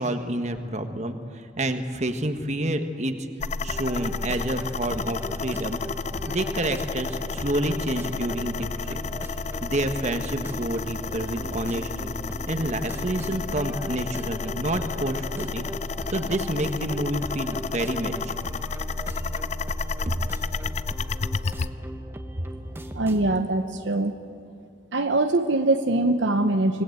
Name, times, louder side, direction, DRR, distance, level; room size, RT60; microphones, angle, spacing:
voice 1, 0.0-3.2 3.6-5.8 6.3-9.0 9.6-12.1 12.5-15.7 16.1-18.4 20.0-20.1, right 1 dB, 35° right, 7 dB, 1.4 m, -29 dB
sound 1, 3.4-21.7, left 4 dB, 35° left, 0.5 m, -31 dB
sound 2, 3.7-23.4, right 1 dB, 15° right, 1.2 m, -39 dB
voice 2, 22.9-24.1 24.9-26.8, right 2 dB, 70° right, 7 dB, 1.0 m, -23 dB
25.5 x 19.5 x 8.0 m, 2.4 s
head